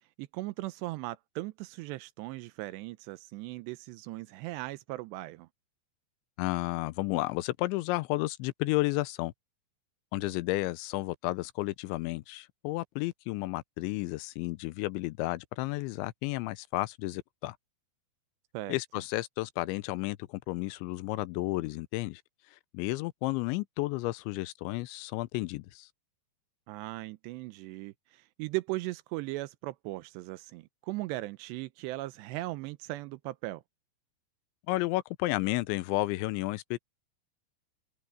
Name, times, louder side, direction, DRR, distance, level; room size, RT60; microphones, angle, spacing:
voice 1, 0.2-5.5 18.5-18.8 26.7-33.6, right 19 dB, 85° right, 2.7 m, -38 dB
voice 2, 6.4-9.3 10.1-17.6 18.7-22.2 22.5-25.9 34.7-36.8, left 19 dB, 90° left, 3.1 m, -32 dB
open air
omnidirectional pair, 5.1 m